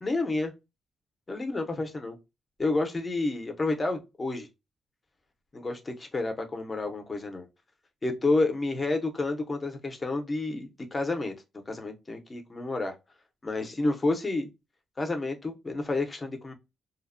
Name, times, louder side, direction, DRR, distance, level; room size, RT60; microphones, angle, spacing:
voice 1, 0.0-0.5 1.3-2.2 2.6-4.5 5.5-7.5 8.0-11.3 11.7-12.9 13.4-14.5 15.0-16.5, left 2 dB, 20° left, 0.5 m, -30 dB
2.7 x 2.0 x 2.4 m
wide cardioid pair, 155°, 0 cm